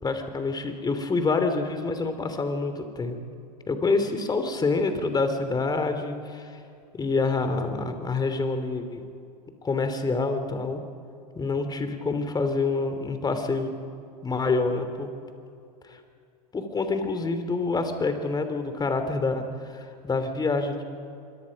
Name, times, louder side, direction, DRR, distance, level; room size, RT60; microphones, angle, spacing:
voice 1, 0.0-3.2 3.7-6.6 6.9-9.0 9.6-10.8 11.3-13.7 14.2-15.1 15.8-16.0 16.5-20.8, left 3 dB, 20° left, 8 dB, 3.1 m, -27 dB
26.5 x 23.0 x 5.3 m, 2.6 s
hypercardioid pair, 90°, 21 cm